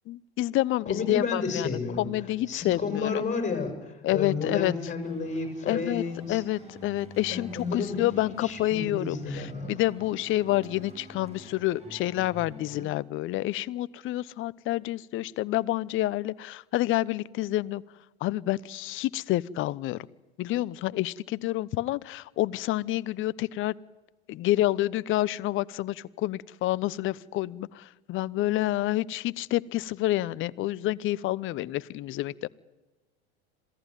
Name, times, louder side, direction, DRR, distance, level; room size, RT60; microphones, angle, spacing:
voice 1, 0.1-3.2 4.0-4.7 5.7-6.0 6.3-17.8 18.2-20.0 20.4-23.7 24.3-32.5, left 15 dB, 40° left, 19 dB, 0.8 m, -28 dB
voice 2, 0.8-2.1 2.5-6.4 7.3-8.0 8.4-9.7, left 4 dB, 20° left, 5 dB, 6.8 m, -31 dB
sound 1, 5.0-12.9, equal, 20° right, 5.7 m, -48 dB
27.0 x 17.0 x 9.2 m, 1.2 s
hypercardioid pair, 85°, 33 cm